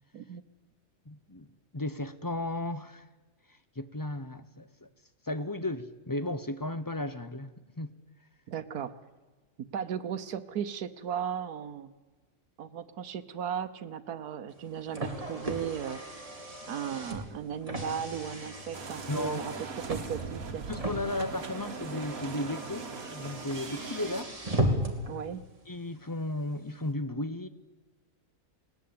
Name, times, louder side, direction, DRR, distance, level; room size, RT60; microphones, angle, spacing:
voice 1, 1.1-3.1 3.5-4.9 5.2-7.9 19.1-19.6 20.7-24.3 25.7-27.5, left 1 dB, 20° left, 0.6 m, -35 dB
voice 2, 8.5-8.9 9.7-11.9 12.6-16.0 16.7-19.5 19.9-20.7 25.1-25.4, right 8 dB, 85° right, 1.5 m, -36 dB
Car, 14.5-25.1, right 1 dB, 25° right, 2.7 m, -36 dB
sound 1, 18.7-24.2, right 4 dB, 70° right, 2.1 m, -40 dB
21.0 x 18.0 x 8.6 m
omnidirectional pair, 1.6 m